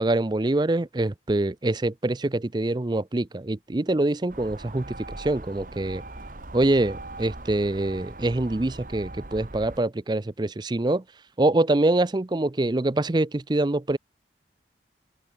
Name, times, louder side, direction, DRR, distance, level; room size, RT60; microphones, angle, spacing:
voice 1, 0.0-6.0 6.5-11.0 11.4-14.0, right 2 dB, 25° right, 0.5 m, -25 dB
sound 1, 4.3-9.8, right 2 dB, 50° right, 1.8 m, -40 dB
open air
head